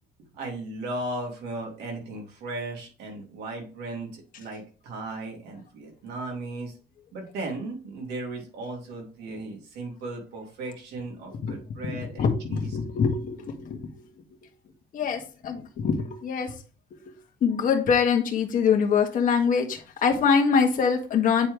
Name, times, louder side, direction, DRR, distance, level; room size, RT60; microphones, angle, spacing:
voice 1, 0.3-6.7 7.1-12.7, right 2 dB, 80° right, 0 dB, 3.0 m, -36 dB
voice 2, 11.9-14.1 14.9-16.5 17.1-17.2 17.4-21.5, left 6 dB, 55° left, 2 dB, 1.6 m, -24 dB
8.8 x 4.4 x 3.3 m, 0.37 s
cardioid pair, 110°, 17 cm